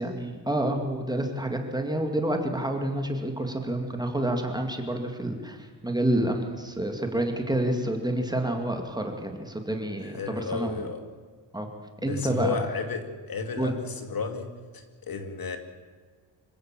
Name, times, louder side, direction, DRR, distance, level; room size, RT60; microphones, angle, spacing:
voice 1, 0.0-10.9 11.5-11.7 12.0-12.6 13.6-13.7, right 1 dB, 10° right, 4 dB, 2.3 m, -28 dB
voice 2, 10.0-11.0 12.1-15.6, left 5 dB, 50° left, 7 dB, 2.4 m, -33 dB
26.0 x 16.0 x 7.6 m, 1.5 s
wide cardioid pair, 165°, 44 cm